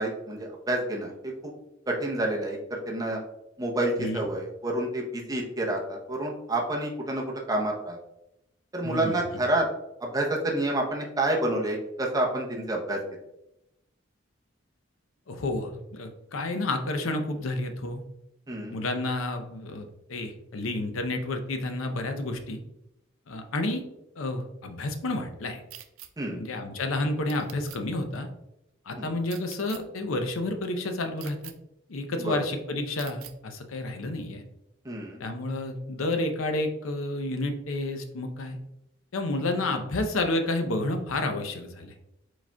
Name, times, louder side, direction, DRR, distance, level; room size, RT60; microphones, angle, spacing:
voice 1, 0.0-1.5 1.9-3.2 3.6-8.0 8.7-9.7 10.0-13.0 18.5-18.8 26.2-26.4 29.0-29.2 32.2-32.4 34.8-35.2, right 1 dB, 20° right, -1 dB, 0.7 m, -29 dB
voice 2, 8.8-9.2 15.3-18.0 18.7-22.6 23.3-23.8 24.2-25.6 26.3-28.3 28.9-31.4 31.9-34.4 35.2-38.6 39.1-41.9, left 2 dB, 85° left, 6 dB, 0.6 m, -30 dB
sound 1, 25.7-26.1 27.3-27.8 29.3-29.8 31.2-31.5 33.0-33.3, right 12 dB, 85° right, 0.4 m, -44 dB
4.8 x 4.1 x 2.2 m, 0.88 s
head